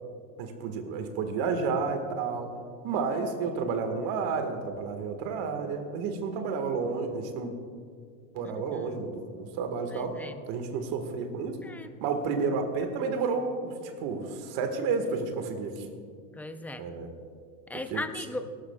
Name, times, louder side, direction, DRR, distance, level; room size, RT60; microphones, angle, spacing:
voice 1, 0.4-2.5 2.8-7.5 8.3-10.2 10.5-11.5 12.0-15.9 16.8-17.1 17.9-18.0, right 4 dB, 60° right, 6 dB, 1.6 m, -31 dB
voice 2, 8.4-9.0 9.9-10.4 11.6-11.9 16.3-16.9 17.7-18.5, left 2 dB, 5° left, 9 dB, 0.5 m, -38 dB
18.5 x 12.5 x 2.3 m, 2.2 s
supercardioid pair, 105°, 42 cm